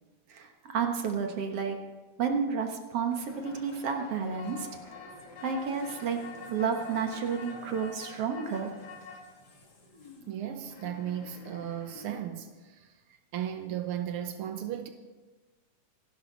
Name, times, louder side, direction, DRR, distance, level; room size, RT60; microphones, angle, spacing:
voice 1, 0.3-1.8 2.2-4.7 5.4-6.2 6.5-8.7, right 6 dB, 55° right, 4 dB, 2.0 m, -31 dB
sound 1, 3.1-12.1, left 3 dB, 35° left, 2.6 m, -47 dB
voice 2, 10.3-14.9, right 10 dB, 85° right, 7 dB, 1.2 m, -36 dB
27.0 x 12.0 x 4.1 m, 1.2 s
omnidirectional pair, 3.7 m